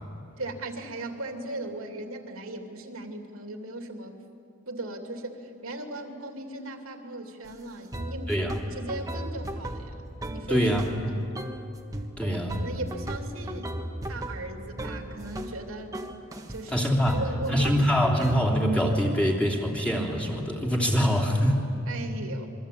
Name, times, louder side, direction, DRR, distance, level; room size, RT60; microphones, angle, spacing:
voice 1, 0.4-4.1 4.7-10.7 11.1-11.3 12.6-13.7 14.1-16.0 16.5-16.9 17.1-17.7 21.9-22.5, right 2 dB, 85° right, 4 dB, 2.9 m, -38 dB
sound 1, 7.4-7.5 7.9-11.0 11.3-11.6 11.9-15.6 15.9-16.6 17.1-18.4, right 1 dB, 15° right, 1.5 m, -36 dB
voice 2, 10.5-10.9 12.2-12.6 16.7-17.2 17.5-21.7, equal, 5° left, -2 dB, 3.1 m, -24 dB
26.5 x 23.0 x 8.6 m, 2.6 s
head